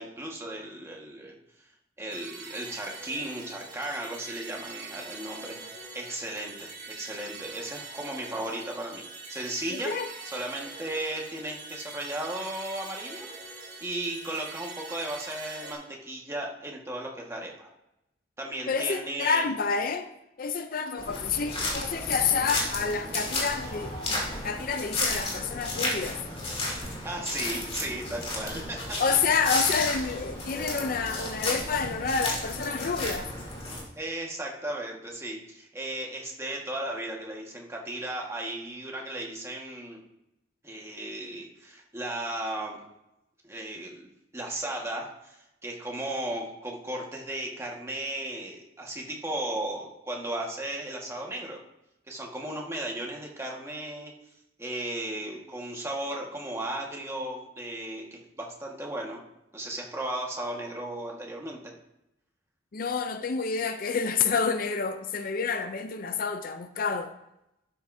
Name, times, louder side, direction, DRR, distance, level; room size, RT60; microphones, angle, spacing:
voice 1, 0.0-1.3 2.0-9.9 10.2-13.3 13.8-17.7 18.4-19.5 27.0-29.0 34.0-40.0 40.6-42.8 43.4-51.6 52.1-54.1 54.6-59.2 59.5-61.6, right 1 dB, 15° right, 1.5 m, -35 dB
sound 1, 2.1-15.7, right 3 dB, 50° right, 3.6 m, -43 dB
voice 2, 9.7-10.1 18.7-20.1 20.4-26.2 29.0-33.3 62.7-67.1, left 5 dB, 50° left, 0.5 m, -28 dB
sound 2, 21.0-33.8, left 2 dB, 30° left, 2.9 m, -33 dB
12.5 x 9.4 x 2.7 m
head